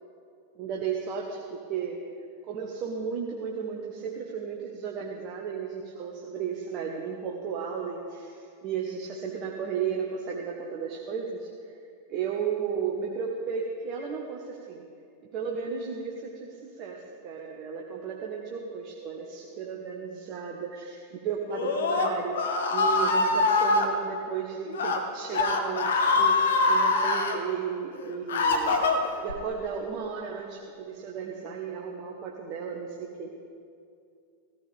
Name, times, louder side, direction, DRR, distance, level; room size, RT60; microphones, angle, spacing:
voice 1, 0.6-2.0 2.5-11.8 12.1-14.9 15.3-28.8 29.2-33.3, right 6 dB, 40° right, -1 dB, 1.3 m, -34 dB
Screaming, 21.5-23.9 24.7-25.0 25.3-27.4 27.9-29.3, left 3 dB, 60° left, 1.3 m, -24 dB
17.5 x 15.0 x 3.5 m, 2.3 s
figure-of-eight pair, 90°, 0 cm